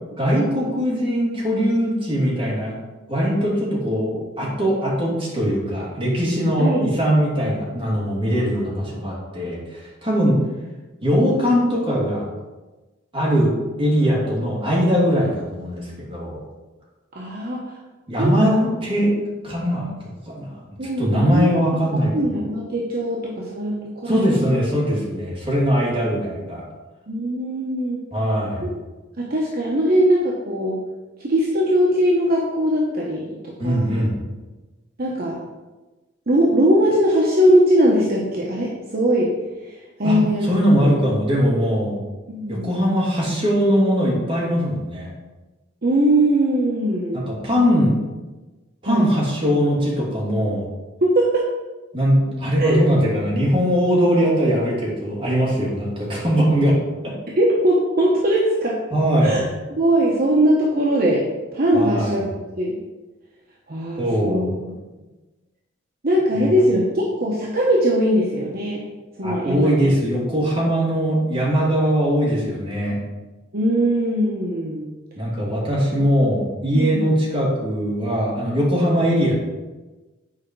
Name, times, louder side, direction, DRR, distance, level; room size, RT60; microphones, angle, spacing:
voice 1, 0.2-2.7 3.1-10.4 11.0-12.2 13.1-16.4 18.1-19.1 19.4-19.9 20.3-20.6 21.0-22.4 24.1-26.6 28.1-28.7 33.6-34.2 40.0-42.0 42.5-45.1 47.1-47.9 48.8-50.7 51.9-56.7 57.0-57.1 58.9-59.4 61.7-62.2 64.0-64.5 66.3-66.7 69.2-73.0 75.2-79.4, equal, 25° right, -6 dB, 2.7 m, -21 dB
voice 2, 17.1-17.7 18.2-18.6 20.8-21.6 22.1-24.5 27.1-28.0 28.6-28.8 29.2-30.8 31.2-34.0 35.0-35.4 36.3-39.3 39.7-40.5 40.8-40.9 42.3-42.7 45.8-47.3 48.8-49.1 51.1-51.4 52.6-52.8 57.4-58.8 59.2-61.2 61.5-62.3 62.6-62.8 63.7-64.5 66.0-68.8 69.2-69.9 73.5-74.9 76.7-77.1, right 1 dB, 50° right, -3 dB, 1.0 m, -20 dB
8.6 x 4.9 x 4.7 m, 1.2 s
head